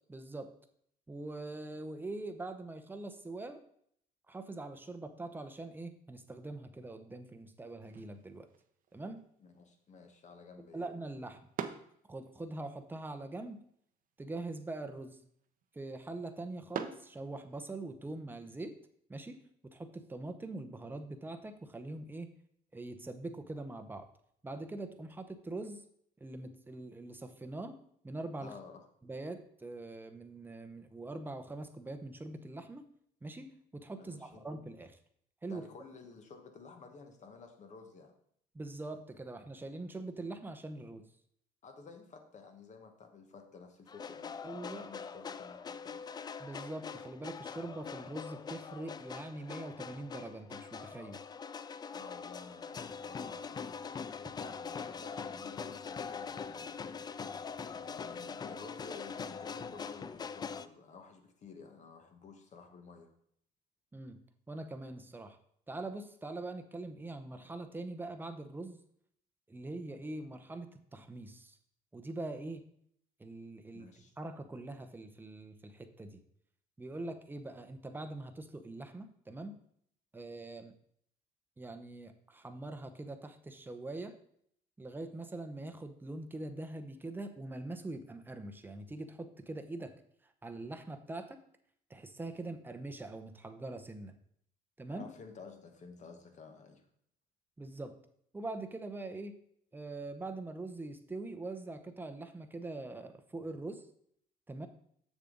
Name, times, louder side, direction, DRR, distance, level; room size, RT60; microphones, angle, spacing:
voice 1, 0.1-0.5 1.1-3.6 4.3-8.5 8.9-9.2 10.7-11.4 12.1-13.6 14.2-15.2 15.7-18.8 19.1-19.4 19.6-22.3 22.7-24.1 24.4-25.8 26.2-27.8 28.0-28.5 29.0-32.8 33.2-35.0 35.4-35.6 38.5-41.1 44.4-44.9 46.4-51.2 63.9-64.2 64.5-65.4 65.7-68.8 69.5-71.6 71.9-72.7 73.2-73.9 74.2-76.2 76.8-79.5 80.1-80.8 81.6-84.2 84.8-89.9 90.4-91.4 91.9-94.2 94.8-95.1 97.6-98.0 98.3-99.4 99.7-103.9 104.5-104.7, right 2 dB, 10° right, 8 dB, 0.8 m, -43 dB
sound 1, 7.8-17.9, right 8 dB, 55° right, 0.8 m, -48 dB
voice 2, 9.4-10.8 28.4-28.8 34.0-34.5 35.5-38.1 41.6-46.0 51.9-53.7 54.3-57.0 57.8-63.1 73.7-74.1 94.9-96.8, left 5 dB, 45° left, 6 dB, 1.3 m, -52 dB
sound 2, 43.9-60.7, left 6 dB, 25° left, 0.3 m, -43 dB
7.3 x 6.8 x 3.9 m, 0.67 s
cardioid pair, 110°, 17 cm